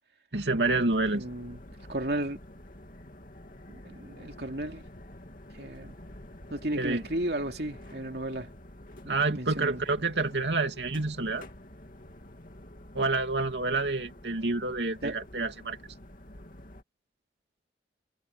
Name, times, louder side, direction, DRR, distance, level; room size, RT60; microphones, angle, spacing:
voice 1, 0.3-1.2 6.7-7.0 9.1-11.5 12.9-15.8, right 3 dB, 80° right, 2.6 m, -28 dB
sound 1, 0.5-16.8, left 1 dB, 50° left, 2.7 m, -48 dB
voice 2, 1.1-1.6 1.9-2.4 3.7-4.9 5.5-6.0 6.5-8.5 9.0-9.8 15.0-15.2, right 1 dB, 65° right, 2.8 m, -34 dB
head